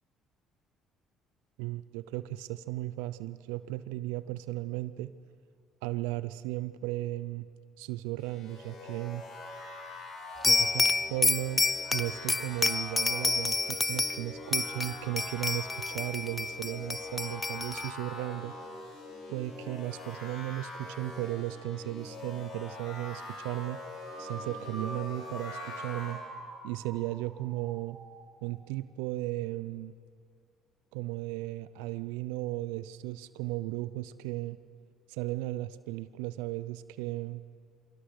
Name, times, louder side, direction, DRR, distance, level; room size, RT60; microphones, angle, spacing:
voice 1, 1.6-5.1 5.8-7.5 7.8-9.3 10.4-11.7 11.9-18.6 19.3-23.8 24.2-26.2 26.6-28.0 28.4-29.9 30.9-34.6 35.1-37.4, right 17 dB, 85° right, 15 dB, 0.5 m, -35 dB
sound 1, 8.2-26.1, left 2 dB, 70° left, 5.7 m, -44 dB
sound 2, 10.4-14.2 14.5-17.9, left 3 dB, 25° left, 0.5 m, -29 dB
sound 3, 24.0-28.5, right 1 dB, 45° right, 5.4 m, -45 dB
25.0 x 16.0 x 6.5 m, 2.3 s
supercardioid pair, 70°, 0 cm